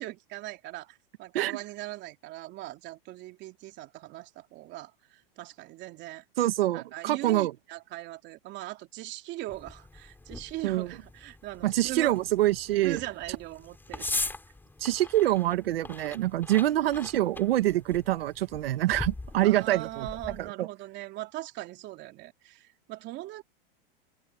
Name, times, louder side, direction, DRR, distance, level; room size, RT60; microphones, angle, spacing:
voice 1, 0.0-6.2 6.7-12.2 12.8-14.3 19.4-23.4, right 17 dB, 40° right, 3.0 m, -40 dB
voice 2, 6.4-7.5 10.6-10.9 11.6-13.0 14.8-20.1 20.4-20.7, right 14 dB, 75° right, 2.2 m, -26 dB
sound 1, 9.5-20.5, left 2 dB, 5° left, 4.0 m, -41 dB
supercardioid pair, 140°, 29 cm